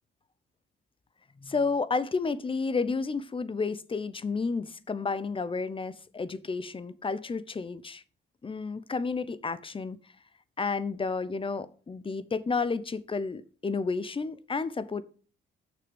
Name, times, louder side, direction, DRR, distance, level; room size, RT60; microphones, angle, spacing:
voice 1, 1.4-8.0 8.4-10.0 10.6-15.0, left 4 dB, 25° left, 0.8 m, -31 dB
6.6 x 6.2 x 7.1 m
cardioid pair, 90°, 20 cm